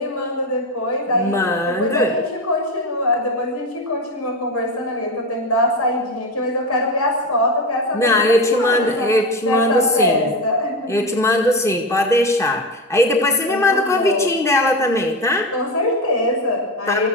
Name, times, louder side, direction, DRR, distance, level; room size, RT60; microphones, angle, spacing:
voice 1, 0.0-1.4 1.6-9.1 9.4-11.1 13.3-14.3 15.5-17.1, left 1 dB, 80° left, 1 dB, 6.5 m, -22 dB
voice 2, 1.1-2.1 7.9-10.3 10.9-15.5 16.9-17.1, left 1 dB, 15° left, 1 dB, 1.9 m, -19 dB
26.0 x 15.0 x 8.0 m, 1.1 s
head